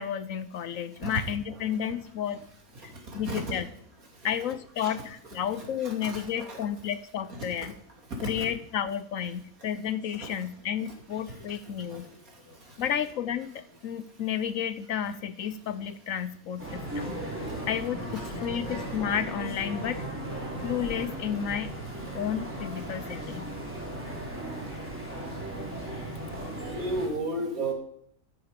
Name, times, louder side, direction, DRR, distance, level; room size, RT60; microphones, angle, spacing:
voice 1, 0.0-2.4 2.8-3.7 4.2-7.7 8.2-12.1 12.8-17.2 17.7-20.0 20.6-21.7 22.1-23.5, left 9 dB, 70° left, 13 dB, 1.0 m, -32 dB
voice 2, 3.1-3.6 4.8-4.9 5.6-6.6 8.2-8.5 17.5-17.6 22.7-22.8 26.8-27.7, right 1 dB, 65° right, 1 dB, 3.2 m, -33 dB
sound 1, 10.0-10.2 10.5-10.6 11.1-14.2 15.4-15.9 17.9-21.2, equal, 15° left, 1.8 m, -43 dB
sound 2, 16.6-27.1, right 1 dB, 10° right, 3.7 m, -37 dB
12.5 x 9.7 x 5.1 m, 0.66 s
omnidirectional pair, 1.6 m